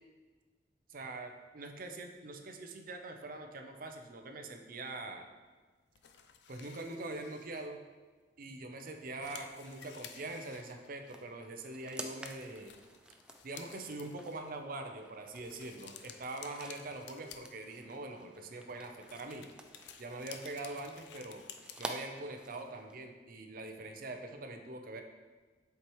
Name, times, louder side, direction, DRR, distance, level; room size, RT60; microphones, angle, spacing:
voice 1, 0.9-5.3 6.5-7.8 8.4-12.8 13.4-19.5 20.0-21.4 21.8-25.0, right 2 dB, 50° right, 5 dB, 0.6 m, -43 dB
sound 1, 6.0-7.7 8.2-8.3 8.7-8.8 9.0-11.3 11.8-11.9 12.2-14.4 15.3-18.0 18.8-21.9, left 8 dB, 70° left, 0.4 m, -53 dB
sound 2, 10.2-23.0, right 1 dB, 5° right, 0.3 m, -51 dB
7.7 x 4.6 x 3.1 m, 1.4 s
head